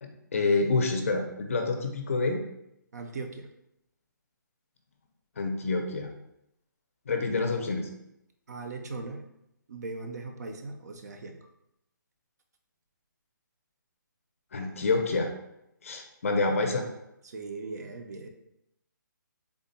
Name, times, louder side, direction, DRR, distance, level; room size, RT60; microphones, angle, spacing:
voice 1, 0.0-2.4 5.4-6.1 7.1-7.9 14.5-15.3 15.8-16.8, left 3 dB, 45° left, 4 dB, 0.5 m, -27 dB
voice 2, 2.9-3.5 8.5-9.2 9.7-11.4 17.2-18.3, right 3 dB, 55° right, 4 dB, 0.5 m, -39 dB
3.4 x 2.1 x 4.0 m, 0.83 s
hypercardioid pair, 170°, 11 cm